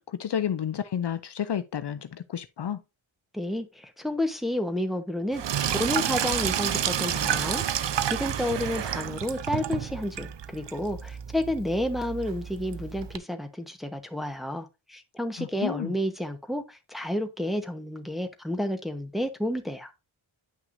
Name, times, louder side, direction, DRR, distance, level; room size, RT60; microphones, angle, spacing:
voice 1, 0.0-2.8 15.4-15.9, left 9 dB, 60° left, 0.6 m, -31 dB
voice 2, 3.3-5.4 5.7-19.9, left 1 dB, ahead, 1.0 m, -30 dB
Sink (filling or washing), 5.3-13.2, right 9 dB, 60° right, 0.6 m, -30 dB
9.6 x 5.8 x 2.6 m
wide cardioid pair, 115°, 48 cm